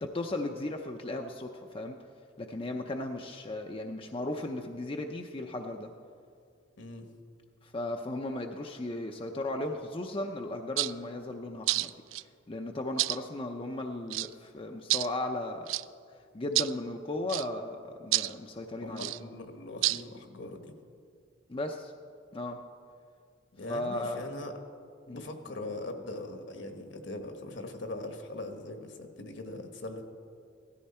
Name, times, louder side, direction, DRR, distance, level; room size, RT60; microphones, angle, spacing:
voice 1, 0.0-2.0 2.4-5.9 7.6-15.7 16.3-19.1 21.5-21.9 22.3-22.6 23.7-24.3 25.1-25.2, left 2 dB, 30° left, 3 dB, 0.6 m, -36 dB
voice 2, 6.8-7.1 18.8-20.7 23.6-24.5 25.1-30.0, left 2 dB, 70° left, 5 dB, 1.4 m, -41 dB
sound 1, 10.8-10.9 11.7-12.2 13.0-13.2 14.1-14.3 14.9-15.1 15.7-15.8 16.6-16.7 17.3-17.5 18.1-18.3 19.0-19.2 19.8-20.0, right 18 dB, 90° right, 0.3 m, -28 dB
16.5 x 14.0 x 4.3 m, 2.3 s
head